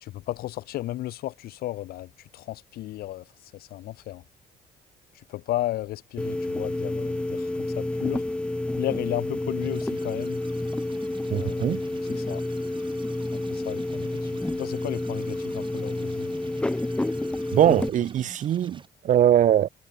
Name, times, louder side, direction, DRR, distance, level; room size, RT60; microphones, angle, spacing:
voice 1, 0.0-3.2 3.5-4.2 5.3-8.2 8.8-10.4 11.3-11.8 12.1-12.4 13.3-14.3 14.6-16.3, left 15 dB, 65° left, 0.5 m, -34 dB
sound 1, 6.2-17.9, left 2 dB, 5° left, 0.4 m, -29 dB
sound 2, 9.6-18.9, right 5 dB, 30° right, 5.3 m, -48 dB
voice 2, 11.3-11.8 17.5-19.7, right 10 dB, 50° right, 0.6 m, -21 dB
cardioid pair, 110°, 17 cm